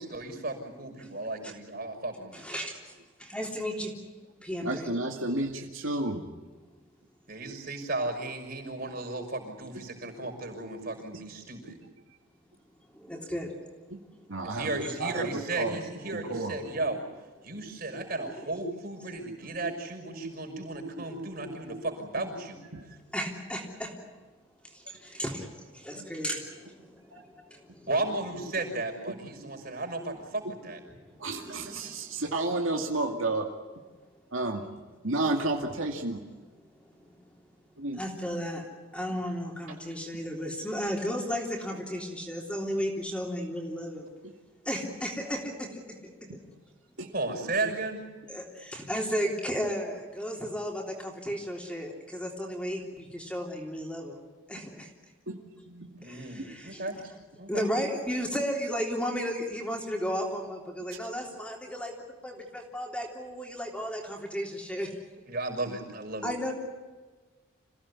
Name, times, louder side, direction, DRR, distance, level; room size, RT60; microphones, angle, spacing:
voice 1, 0.0-2.4 7.3-11.8 14.4-17.0 17.4-22.6 27.9-30.8 47.1-48.0 56.0-57.0 57.4-57.7 65.3-66.3, right 2 dB, 45° right, 4 dB, 6.1 m, -34 dB
voice 2, 2.3-2.9 3.2-3.9 4.4-4.9 12.9-13.5 18.2-18.4 23.1-23.9 24.7-27.9 31.1-32.2 37.0-37.3 37.9-44.1 44.7-46.3 48.3-54.2 54.5-54.9 56.0-56.8 57.1-57.2 57.5-64.9 66.2-66.5, equal, 5° left, 0 dB, 3.3 m, -34 dB
voice 3, 4.6-6.2 14.3-15.8 16.1-16.8 21.0-21.1 21.5-21.8 22.7-22.9 25.9-26.1 27.1-27.2 29.1-29.2 31.2-33.5 34.3-34.6 35.0-36.2 37.8-38.0 44.2-44.3 46.3-46.4 47.0-47.1 55.3-55.4 55.7-56.0, right 2 dB, 70° right, 2 dB, 2.3 m, -32 dB
27.5 x 16.5 x 9.9 m, 1.3 s
head